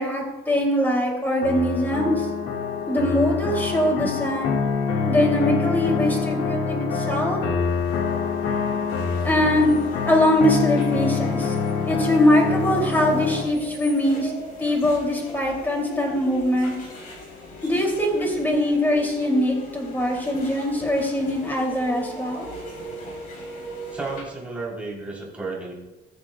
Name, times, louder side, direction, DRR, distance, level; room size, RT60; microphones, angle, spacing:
voice 1, 0.0-2.3 2.9-4.5 5.1-7.4 9.2-9.7 10.0-11.5 11.8-14.3 14.6-16.7 17.6-22.5, left 1 dB, 10° left, 0 dB, 2.7 m, -22 dB
sound 1, 1.4-13.4, left 5 dB, 80° left, 1.7 m, -26 dB
sound 2, 7.6-24.2, equal, 45° left, 3.8 m, -39 dB
voice 2, 23.9-25.7, right 3 dB, 5° right, -4 dB, 3.3 m, -32 dB
20.5 x 7.3 x 2.3 m, 1.1 s
cardioid pair, 160°, 20 cm